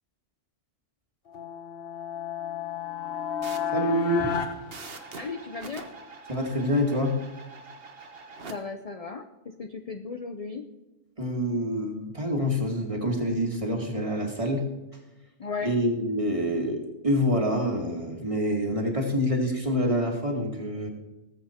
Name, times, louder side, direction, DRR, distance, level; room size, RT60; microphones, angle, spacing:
sound 1, 1.3-5.6, left 8 dB, 55° left, 1.3 m, -33 dB
sound 2, 3.4-8.5, right 4 dB, 55° right, 1.4 m, -45 dB
voice 1, 3.7-4.3 6.3-7.2 11.2-14.6 15.6-20.9, equal, 25° right, 1 dB, 2.1 m, -26 dB
voice 2, 5.2-5.9 8.5-10.7 15.4-15.7, left 4 dB, 40° left, 6 dB, 0.7 m, -36 dB
19.0 x 8.0 x 4.4 m, 1.1 s
omnidirectional pair, 1.2 m